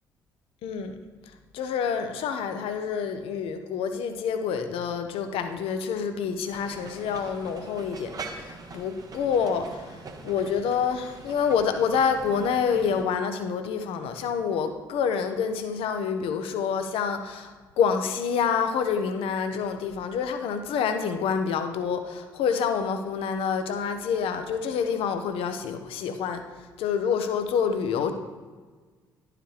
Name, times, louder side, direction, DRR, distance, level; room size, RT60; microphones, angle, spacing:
voice 1, 0.6-1.0 1.5-26.4 26.8-28.1, left 6 dB, 55° left, 8 dB, 0.7 m, -27 dB
sound 1, 6.5-13.0, right 3 dB, 35° right, 0.9 m, -43 dB
11.0 x 4.9 x 3.1 m, 1.4 s
figure-of-eight pair, 45°, 11 cm